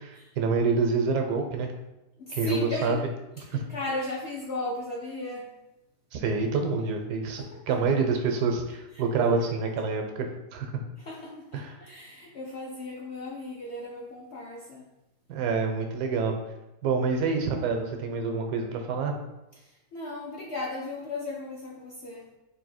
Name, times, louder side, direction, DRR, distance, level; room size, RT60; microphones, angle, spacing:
voice 1, 0.0-1.7 2.3-3.0 3.4-3.6 6.1-10.3 10.5-10.8 11.5-11.8 15.3-16.3 16.8-19.1, right 4 dB, 80° right, 4 dB, 1.2 m, -27 dB
voice 2, 2.3-2.9 3.7-5.5 11.1-14.8 19.9-22.2, left 2 dB, 65° left, -4 dB, 0.6 m, -35 dB
3.6 x 2.7 x 4.1 m, 0.94 s
omnidirectional pair, 1.8 m